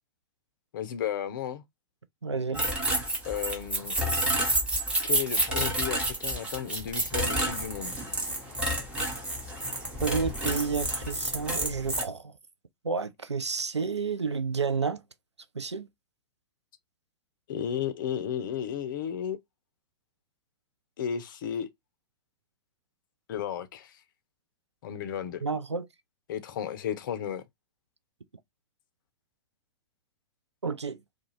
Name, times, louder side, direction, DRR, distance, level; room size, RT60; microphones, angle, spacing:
voice 1, 0.7-1.6 3.2-4.0 5.0-7.9 17.5-19.4 21.0-21.7 23.3-23.9 24.8-25.4 26.3-27.4, left 9 dB, 50° left, 0.5 m, -33 dB
voice 2, 2.2-2.7 10.0-12.3 12.8-15.0 15.5-15.9 25.4-25.9 30.6-31.0, right 5 dB, 85° right, 0.4 m, -30 dB
sound 1, 2.5-12.0, right 1 dB, 10° right, 0.8 m, -29 dB
2.4 x 2.3 x 3.0 m
figure-of-eight pair, 105°, 14 cm